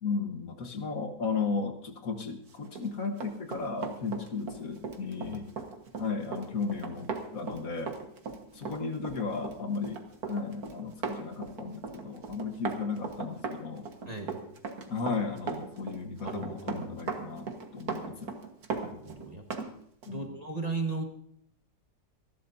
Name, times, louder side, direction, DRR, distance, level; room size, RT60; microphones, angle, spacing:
voice 1, 0.0-5.5 6.0-7.9 8.5-13.9 14.9-17.5 17.7-18.3 20.1-20.3, left 4 dB, 60° left, 5 dB, 1.7 m, -35 dB
Run, 2.6-19.7 20.0-20.2, right 5 dB, 65° right, 1.9 m, -38 dB
voice 2, 16.2-16.9 18.9-19.4 20.1-21.0, right 3 dB, 25° right, 3 dB, 1.4 m, -36 dB
26.5 x 11.5 x 2.7 m, 0.68 s
omnidirectional pair, 1.7 m